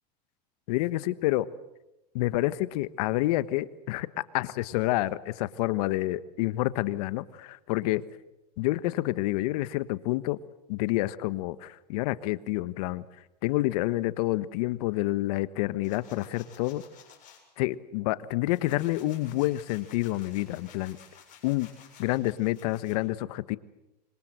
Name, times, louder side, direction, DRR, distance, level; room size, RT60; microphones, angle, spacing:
voice 1, 0.7-1.5 2.1-4.1 4.3-8.0 8.6-10.4 10.7-13.0 13.4-16.8 17.6-21.0 21.4-21.7 22.0-23.6, left 17 dB, 65° left, 16 dB, 1.3 m, -28 dB
sound 1, 15.8-17.4 18.0-23.0, left 8 dB, 40° left, 7.3 m, -54 dB
26.0 x 25.0 x 7.9 m, 0.95 s
supercardioid pair, 115°, 21 cm